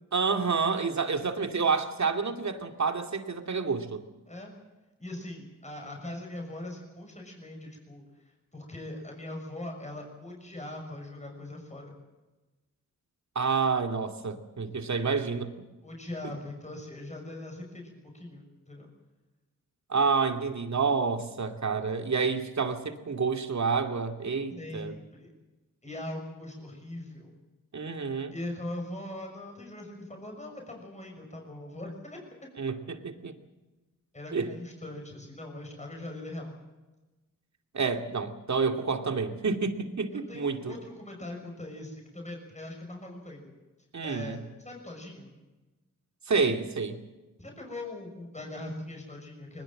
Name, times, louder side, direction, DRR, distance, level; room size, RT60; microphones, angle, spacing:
voice 1, 0.1-4.0 13.4-15.5 19.9-24.9 27.7-28.3 32.6-33.3 34.3-34.5 37.7-40.8 43.9-44.4 46.3-47.0, right 5 dB, 55° right, 5 dB, 2.4 m, -29 dB
voice 2, 5.0-12.0 15.8-18.9 24.6-25.3 25.8-27.3 28.3-32.2 34.1-36.5 40.1-43.5 44.0-45.3 47.4-49.6, left 1 dB, 20° left, 1 dB, 6.3 m, -41 dB
21.0 x 20.5 x 7.7 m, 1.1 s
cardioid pair, 65°, 33 cm